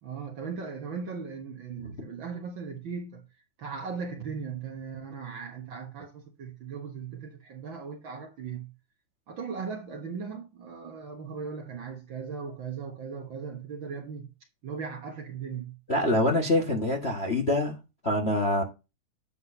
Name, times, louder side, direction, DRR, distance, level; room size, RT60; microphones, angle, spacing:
voice 1, 0.0-3.2 3.6-8.7 9.3-14.3 14.6-15.8, right 5 dB, 50° right, 1.7 m, -38 dB
voice 2, 15.9-17.8 18.0-18.6, left 1 dB, 30° left, 1.2 m, -25 dB
9.5 x 7.9 x 2.7 m
omnidirectional pair, 3.4 m